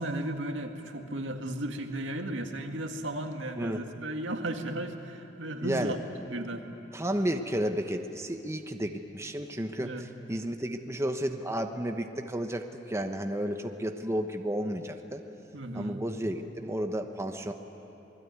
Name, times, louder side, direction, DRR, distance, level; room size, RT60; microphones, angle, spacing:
voice 1, 0.0-6.0 6.3-6.6 9.8-10.1 15.5-16.0, right 1 dB, 80° right, 4 dB, 2.0 m, -35 dB
voice 2, 3.6-3.9 5.6-6.0 6.9-15.2 15.7-17.5, right 1 dB, 15° right, 5 dB, 1.0 m, -32 dB
27.0 x 21.0 x 9.5 m, 2.9 s
head